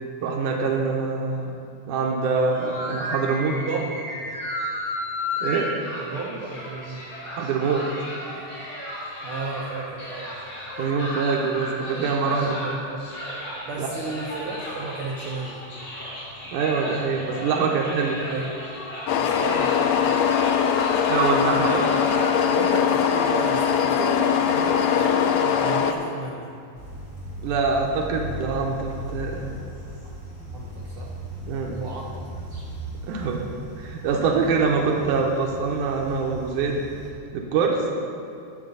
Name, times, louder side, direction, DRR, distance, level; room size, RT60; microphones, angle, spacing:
voice 1, 0.2-1.5 1.9-3.5 5.4-5.7 7.3-7.8 10.8-12.5 13.8-13.9 16.5-18.2 21.1-21.7 27.4-29.6 31.5-31.8 33.0-33.4 33.8-36.8 37.3-37.8, right 5 dB, 85° right, 0 dB, 2.4 m, -24 dB
sound 1, 2.5-22.1, left 1 dB, 50° left, 4.0 m, -34 dB
voice 2, 3.5-4.0 6.0-7.0 9.2-10.3 12.3-13.0 13.6-15.6 18.1-18.6 19.2-20.2 21.5-26.5 30.5-31.1 31.7-32.1, right 3 dB, 70° right, -3 dB, 1.3 m, -33 dB
sound 2, 19.1-25.9, left 7 dB, 80° left, 1.5 m, -21 dB
sound 3, 26.7-37.1, equal, 25° right, 2.7 m, -38 dB
17.0 x 6.7 x 3.9 m, 2.6 s
omnidirectional pair, 3.5 m